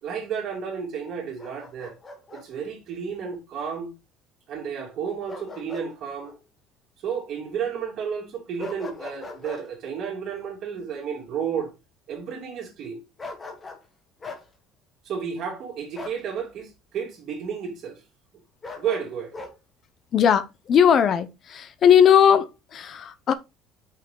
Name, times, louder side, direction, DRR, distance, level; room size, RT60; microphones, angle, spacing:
voice 1, 0.0-1.9 2.3-3.9 4.5-6.3 7.0-11.7 12.1-13.0 15.0-18.0 18.8-19.3, right 7 dB, 45° right, 2.7 m, -32 dB
Bark, 1.4-2.5 5.3-5.9 6.2-6.4 8.6-9.6 13.2-13.9 14.2-14.4 15.9-16.2 18.6-19.5, left 3 dB, 20° left, 1.4 m, -39 dB
voice 2, 20.1-23.3, left 8 dB, 35° left, 0.6 m, -18 dB
5.9 x 5.8 x 3.7 m
cardioid pair, 155°, 0 cm